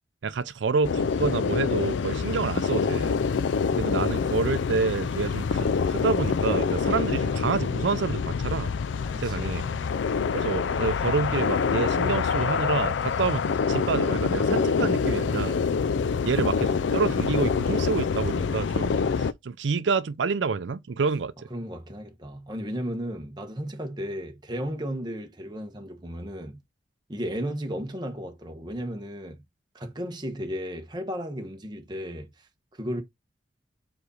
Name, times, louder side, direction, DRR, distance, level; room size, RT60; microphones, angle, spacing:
voice 1, 0.2-3.2 3.8-8.7 9.2-9.6 10.3-15.6 16.2-21.3, right 4 dB, 85° right, 0.5 m, -28 dB
sound 1, 0.8-19.3, left 5 dB, 90° left, 0.4 m, -26 dB
voice 2, 9.0-9.9 21.5-26.6 27.1-29.4 29.7-33.0, equal, 25° right, 1.0 m, -34 dB
4.8 x 4.1 x 4.9 m
head